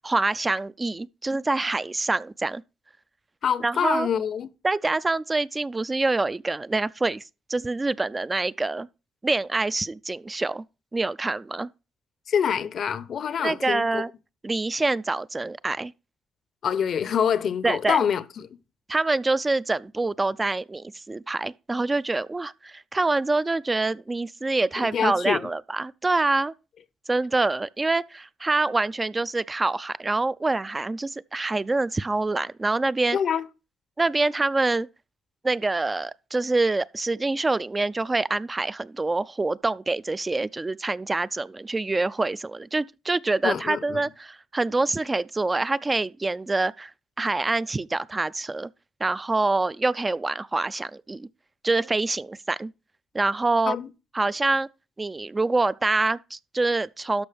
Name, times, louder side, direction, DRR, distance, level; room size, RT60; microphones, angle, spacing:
voice 1, 0.0-2.6 3.6-4.1 4.6-7.2 7.5-8.9 9.2-10.6 10.9-11.7 13.4-14.1 14.4-15.9 17.6-18.0 18.9-26.5 27.1-33.2 34.0-34.9 35.4-46.9 47.2-48.7 49.0-51.3 51.6-52.7 53.1-53.8 54.1-54.7 55.0-57.2, right 3 dB, 20° right, 0.3 m, -26 dB
voice 2, 3.4-4.5 12.3-14.0 16.6-18.5 24.9-25.5 33.1-33.5 43.4-44.0 53.7-53.9, left 7 dB, 60° left, 0.7 m, -25 dB
12.5 x 5.3 x 3.4 m
cardioid pair, 90°, 0 cm